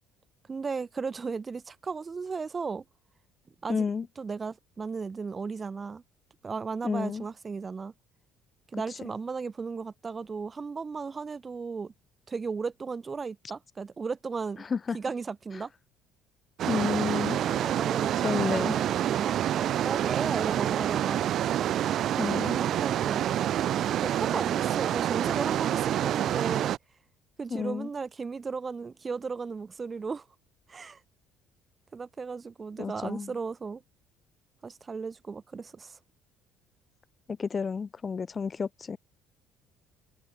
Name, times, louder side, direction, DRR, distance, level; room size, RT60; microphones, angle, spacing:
voice 1, 0.5-2.8 3.6-3.8 4.2-6.0 6.4-7.9 8.7-11.9 12.3-14.7 14.9-15.7 17.4-21.3 22.3-23.3 24.0-26.7 27.4-30.2 30.7-31.0 31.9-33.8 34.6-36.0, right 5 dB, 25° right, 1.2 m, -35 dB
voice 2, 3.7-4.1 6.8-7.2 14.7-15.0 16.7-17.4 18.1-18.8 22.2-22.6 27.5-27.9 32.8-33.3 37.3-39.0, left 5 dB, 25° left, 1.0 m, -31 dB
sound 1, 16.6-26.8, right 11 dB, 50° right, 0.8 m, -27 dB
cardioid pair, 135°, 0 cm